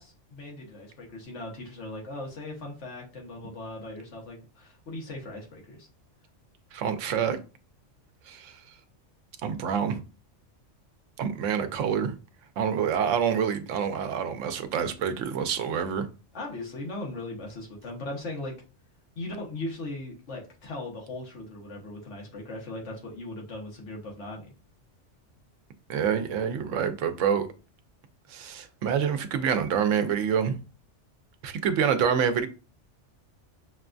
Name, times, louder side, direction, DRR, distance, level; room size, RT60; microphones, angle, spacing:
voice 1, 0.0-5.9 16.3-18.5 19.1-24.5, left 2 dB, 70° left, 1.4 m, -38 dB
voice 2, 6.7-7.4 8.3-8.6 9.4-10.0 11.2-12.1 12.6-16.1 25.9-27.5 28.3-30.6 31.4-32.5, right 7 dB, 90° right, 0.9 m, -27 dB
6.0 x 2.3 x 2.5 m
omnidirectional pair, 1.3 m